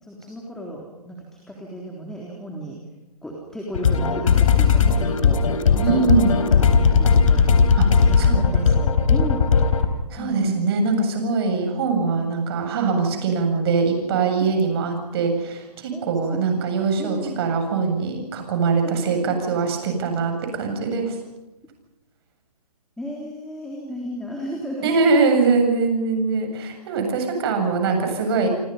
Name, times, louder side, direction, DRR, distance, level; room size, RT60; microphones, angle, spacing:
voice 1, 0.0-2.8 3.2-5.4 5.7-6.3 6.6-7.5 8.0-9.5 10.2-10.8 14.4-14.5 15.9-16.4 17.0-17.4 18.8-19.4 23.0-24.9, right 1 dB, ahead, -1 dB, 3.6 m, -34 dB
sound 1, 3.7-9.8, left 6 dB, 55° left, 3.8 m, -17 dB
voice 2, 5.8-6.3 7.8-7.9 8.2-8.6 10.1-21.2 24.8-28.5, right 4 dB, 40° right, 4 dB, 7.7 m, -22 dB
30.0 x 25.0 x 5.6 m, 0.99 s
figure-of-eight pair, 140°, 20 cm